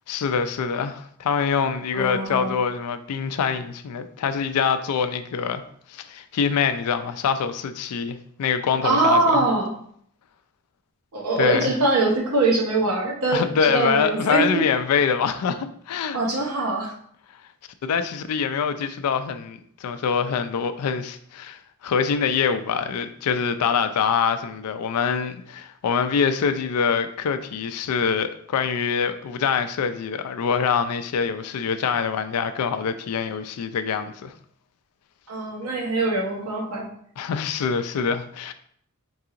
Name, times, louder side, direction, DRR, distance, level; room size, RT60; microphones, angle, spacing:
voice 1, 0.1-5.6 5.9-9.4 11.4-11.7 13.3-16.2 17.8-34.3 37.2-38.5, left 6 dB, 85° left, 10 dB, 0.4 m, -25 dB
voice 2, 1.9-2.5 8.8-9.7 11.1-14.6 16.1-16.9 35.3-36.9, right 2 dB, 85° right, -1 dB, 1.0 m, -23 dB
4.6 x 2.8 x 2.5 m, 0.63 s
head